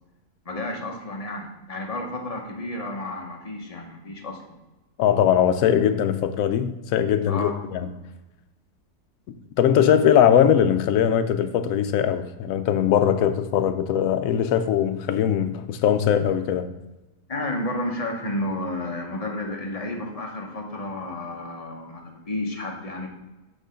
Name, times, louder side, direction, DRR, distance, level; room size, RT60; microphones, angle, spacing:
voice 1, 0.5-4.6 7.3-7.5 17.3-23.1, left 1 dB, 30° left, 1 dB, 0.8 m, -31 dB
voice 2, 5.0-7.9 9.6-16.7, left 9 dB, 70° left, 9 dB, 0.9 m, -20 dB
7.8 x 3.8 x 5.0 m, 1.1 s
omnidirectional pair, 1.6 m